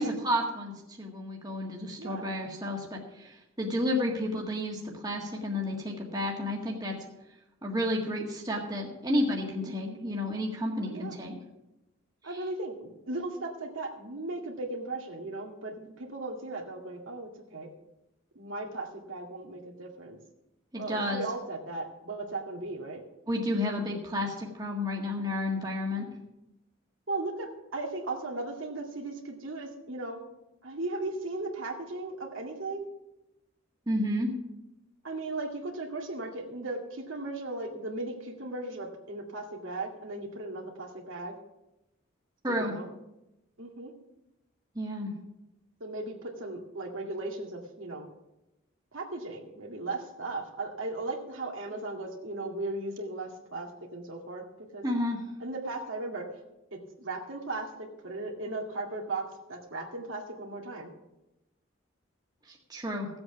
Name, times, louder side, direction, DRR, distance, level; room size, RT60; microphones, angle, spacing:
voice 1, 0.0-6.9 7.6-11.4 12.2-12.4 20.7-21.2 23.3-26.1 33.9-34.3 42.4-42.8 44.8-45.1 54.8-55.2 62.5-63.1, left 1 dB, 20° right, -1 dB, 1.7 m, -31 dB
voice 2, 9.6-10.0 10.8-11.2 12.2-17.7 18.4-20.2 20.7-23.0 27.1-30.2 30.6-32.9 35.0-41.3 42.7-42.9 43.6-43.9 45.8-48.1 48.9-54.4 54.7-54.8 55.4-56.2 56.7-60.9, right 2 dB, 75° right, 1 dB, 2.1 m, -37 dB
15.5 x 8.0 x 5.9 m, 0.93 s
head